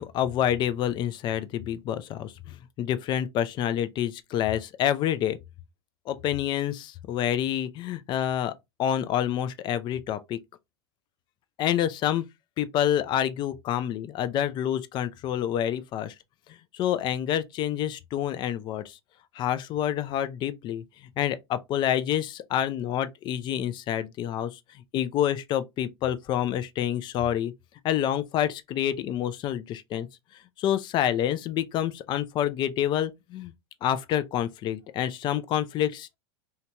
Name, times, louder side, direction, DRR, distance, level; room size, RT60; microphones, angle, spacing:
voice 1, 0.0-5.4 6.1-8.5 8.8-10.4 11.6-12.2 12.6-16.1 16.7-19.0 19.3-20.8 21.2-24.6 24.9-27.5 27.8-30.1 30.6-33.5 33.8-36.2, left 10 dB, 35° left, 0.4 m, -28 dB
2.8 x 2.2 x 2.7 m
hypercardioid pair, 110°, 14 cm